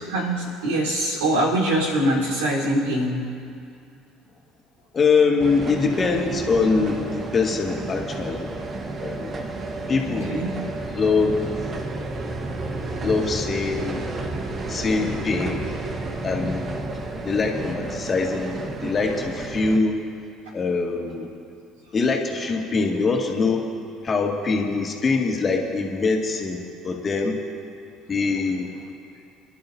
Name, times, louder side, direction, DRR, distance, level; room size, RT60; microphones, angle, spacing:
voice 1, 0.1-3.2 10.1-10.5, right 1 dB, 80° right, -5 dB, 4.2 m, -23 dB
voice 2, 4.9-8.6 9.0-9.3 9.9-10.3 10.9-11.5 13.0-14.2 14.7-15.7 16.2-16.7 17.2-20.0 20.5-21.3 21.9-23.7 24.0-27.4 28.1-28.7, left 4 dB, 35° left, 0 dB, 2.3 m, -23 dB
sound 1, 5.4-19.8, right 2 dB, 40° right, 1.4 m, -31 dB
27.0 x 11.5 x 2.8 m, 2.5 s
hypercardioid pair, 60°, 0 cm